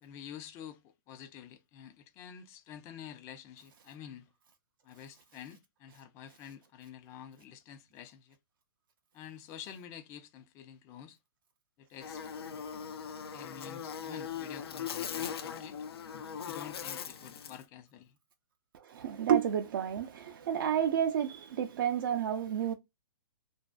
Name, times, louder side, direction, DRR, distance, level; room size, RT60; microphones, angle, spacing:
voice 1, 0.0-4.3 4.8-8.4 9.1-11.2 11.9-12.2 13.3-15.8 16.4-18.1, left 9 dB, 20° left, 0.3 m, -49 dB
Buzz, 12.0-17.6, left 8 dB, 85° left, 0.5 m, -40 dB
voice 2, 18.7-22.7, right 9 dB, 60° right, 0.4 m, -30 dB
2.5 x 2.3 x 2.2 m
hypercardioid pair, 150°, 13 cm